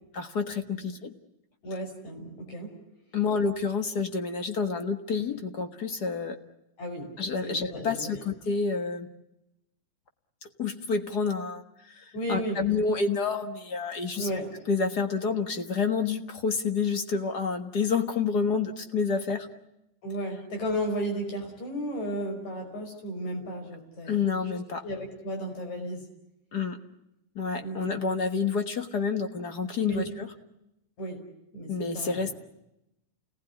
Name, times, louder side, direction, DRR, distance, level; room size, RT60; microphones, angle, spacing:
voice 1, 0.1-1.1 3.1-6.4 7.2-9.1 10.6-11.6 12.0-14.3 14.7-19.5 24.1-24.8 26.5-26.8 27.3-30.3 31.7-32.3, left 5 dB, 45° left, 7 dB, 1.5 m, -28 dB
voice 2, 1.6-2.7 6.8-7.1 7.4-8.1 12.1-12.6 14.1-14.5 20.0-24.2 24.5-26.0 27.6-28.0 29.8-30.1 31.0-31.2 31.5-32.3, equal, 70° left, 3 dB, 6.8 m, -34 dB
29.5 x 19.0 x 9.8 m, 0.88 s
omnidirectional pair, 3.4 m